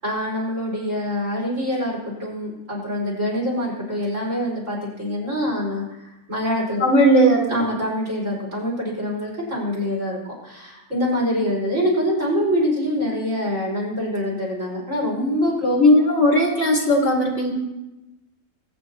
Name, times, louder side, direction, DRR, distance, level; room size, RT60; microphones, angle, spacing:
voice 1, 0.0-5.8 6.3-6.9 7.5-15.8, equal, 55° right, -4 dB, 5.6 m, -25 dB
voice 2, 6.8-7.5 15.7-17.5, equal, 50° left, 0 dB, 2.3 m, -17 dB
21.5 x 9.6 x 2.9 m, 1.0 s
omnidirectional pair, 1.6 m